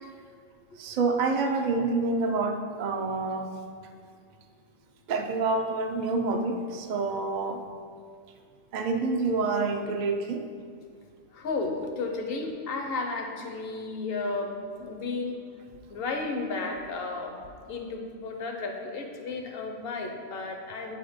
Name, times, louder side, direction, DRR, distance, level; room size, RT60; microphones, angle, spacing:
voice 1, 0.8-3.5 5.1-7.6 8.7-10.4, right 3 dB, 50° right, 5 dB, 0.6 m, -27 dB
voice 2, 11.3-15.4 15.9-17.4 17.7-21.0, left 3 dB, 55° left, 3 dB, 1.0 m, -33 dB
8.4 x 4.3 x 5.0 m, 2.1 s
omnidirectional pair, 1.2 m